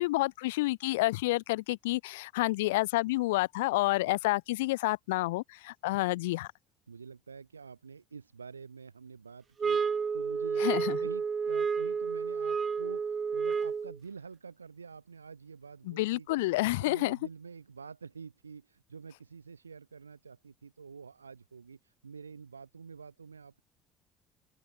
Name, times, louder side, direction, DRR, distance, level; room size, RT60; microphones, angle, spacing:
voice 1, 0.0-6.5 10.6-11.0 15.9-17.2, left 20 dB, 70° left, 0.7 m, -29 dB
voice 2, 6.9-16.5 16.8-23.6, right 5 dB, 85° right, 4.8 m, -48 dB
sound 1, 9.6-14.0, right 5 dB, 35° right, 1.2 m, -30 dB
open air
figure-of-eight pair, 55°, 0 cm